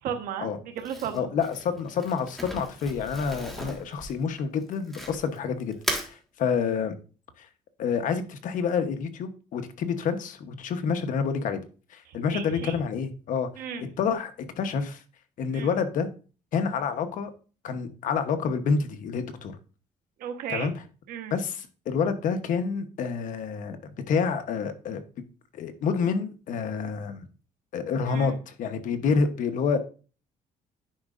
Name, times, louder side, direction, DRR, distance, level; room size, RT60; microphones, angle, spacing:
voice 1, 0.0-1.3 12.1-12.8 13.6-13.9 15.5-15.7 20.2-20.7 21.1-21.4 28.1-28.4, right 8 dB, 80° right, 6 dB, 1.2 m, -35 dB
Crumpling crinkling, 0.8-5.4 5.7-6.1, equal, ahead, 1.6 m, -36 dB
voice 2, 1.1-6.9 7.4-7.5 7.8-11.6 11.9-13.5 14.0-14.3 14.6-15.0 15.4-16.1 16.5-17.3 17.6-19.6 20.5-20.7 21.3-23.8 24.1-25.0 25.5-27.3 27.7-29.8, left 6 dB, 65° left, 9 dB, 1.0 m, -28 dB
10.5 x 5.0 x 2.5 m, 0.36 s
cardioid pair, 115°, 14 cm